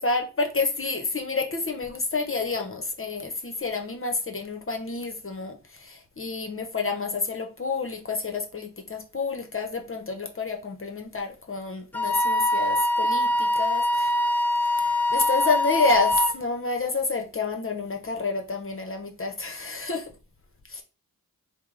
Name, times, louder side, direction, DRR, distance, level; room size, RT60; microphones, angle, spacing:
voice 1, 0.0-14.2 14.6-20.0 20.7-20.8, left 3 dB, 40° left, 0.7 m, -29 dB
Wind instrument woodwind instrument, 11.9-16.4, left 1 dB, 5° left, 0.7 m, -23 dB
4.4 x 2.0 x 3.8 m
cardioid pair, 50°, 35 cm